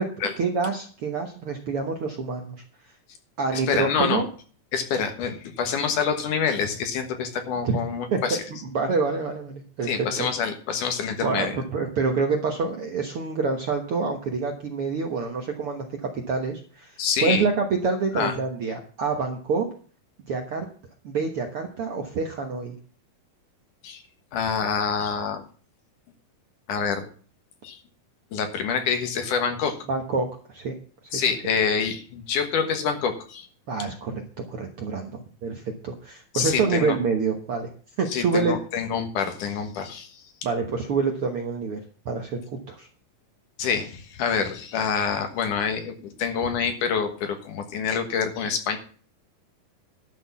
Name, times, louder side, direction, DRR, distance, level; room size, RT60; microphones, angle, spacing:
voice 1, 0.0-2.6 3.4-4.2 7.6-7.8 8.1-8.4 8.7-10.3 11.2-19.7 20.3-20.7 21.0-22.7 29.9-30.7 31.1-31.2 33.7-34.2 34.5-37.7 38.0-38.6 40.4-42.9, right 4 dB, 60° right, 3 dB, 1.5 m, -27 dB
voice 2, 3.5-4.2 4.7-8.4 9.9-11.6 17.0-17.4 18.1-18.3 23.8-24.0 24.3-25.4 26.7-27.1 27.6-27.8 28.3-29.8 31.1-33.5 36.3-37.0 38.1-40.1 43.6-48.8, left 6 dB, 65° left, 6 dB, 2.7 m, -26 dB
12.0 x 6.2 x 7.1 m, 0.42 s
omnidirectional pair, 4.1 m